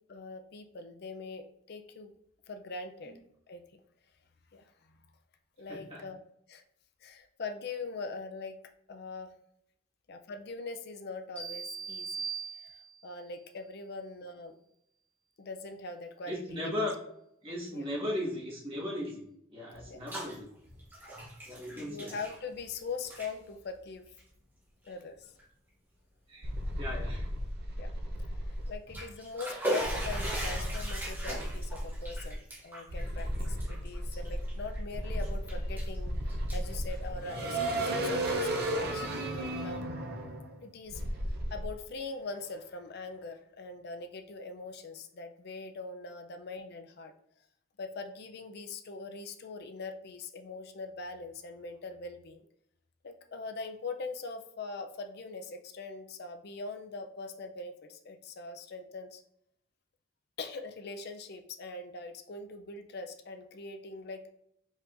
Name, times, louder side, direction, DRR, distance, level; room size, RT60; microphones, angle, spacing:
voice 1, 0.0-2.1 2.5-3.1 3.5-3.6 4.5-4.6 5.6-6.2 6.5-6.6 7.0-8.6 8.9-9.3 10.1-12.8 13.0-14.6 15.4-16.7 17.7-17.8 19.9-20.3 21.8-24.0 24.8-25.3 27.8-27.9 28.4-39.8 40.6-41.0 41.5-47.1 47.8-52.4 53.0-59.2 60.4-64.3, left 3 dB, 50° left, 7 dB, 0.5 m, -42 dB
voice 2, 5.7-6.0 16.3-17.0 17.4-19.2 19.5-20.5 21.5-22.2 26.3-26.5 26.7-27.3, left 1 dB, 25° right, -7 dB, 1.8 m, -36 dB
sound 1, 11.4-13.2, right 6 dB, 5° left, 1.4 m, -39 dB
Bathtub (filling or washing), 19.7-20.4 20.7-22.8 23.0-23.3 24.1-24.2 24.9-25.0 25.4-25.5 28.7-34.8 35.2-36.0 36.3-37.6, right 1 dB, 10° right, 1.1 m, -39 dB
sound 2, 26.4-28.7 29.8-32.4 32.9-41.7, right 1 dB, 50° right, 0.7 m, -34 dB
5.0 x 3.9 x 2.6 m, 0.74 s
head